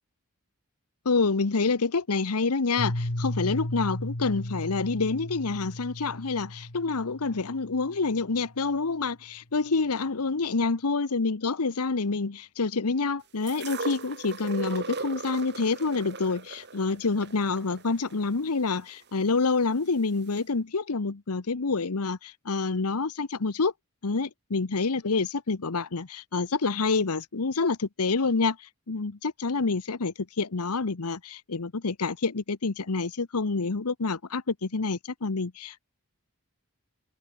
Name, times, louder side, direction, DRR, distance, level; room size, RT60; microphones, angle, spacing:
voice 1, 1.0-23.7 24.0-35.8, left 4 dB, 85° left, 1.0 m, -27 dB
Piano, 2.8-8.4, left 1 dB, 65° left, 2.6 m, -35 dB
sound 1, 13.5-19.5 20.4-20.5, right 3 dB, 50° right, 4.2 m, -38 dB
head